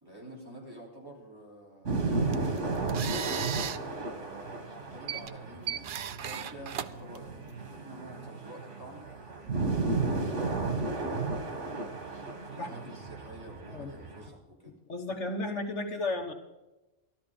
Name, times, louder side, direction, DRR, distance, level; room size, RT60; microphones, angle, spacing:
voice 1, 0.0-2.8 4.0-9.1 9.8-11.7 12.4-14.7, right 1 dB, 20° right, -3 dB, 3.6 m, -49 dB
sound 1, 1.9-14.3, right 3 dB, 85° right, 2.1 m, -34 dB
sound 2, 2.1-7.8, right 8 dB, 55° right, 0.7 m, -38 dB
voice 2, 14.9-16.3, left 2 dB, 75° left, 5 dB, 1.7 m, -33 dB
13.5 x 13.0 x 5.1 m, 1.0 s
omnidirectional pair, 1.2 m